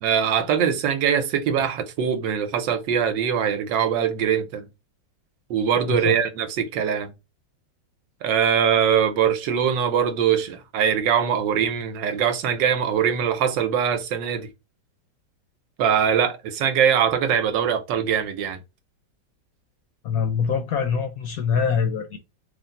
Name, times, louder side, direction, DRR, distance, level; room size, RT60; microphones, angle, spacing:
voice 1, 0.0-4.7 5.5-7.1 8.2-14.5 15.8-18.6, right 8 dB, 85° right, 1.4 m, -22 dB
voice 2, 20.0-22.2, left 6 dB, 70° left, 0.9 m, -24 dB
3.5 x 2.5 x 3.8 m
omnidirectional pair, 2.0 m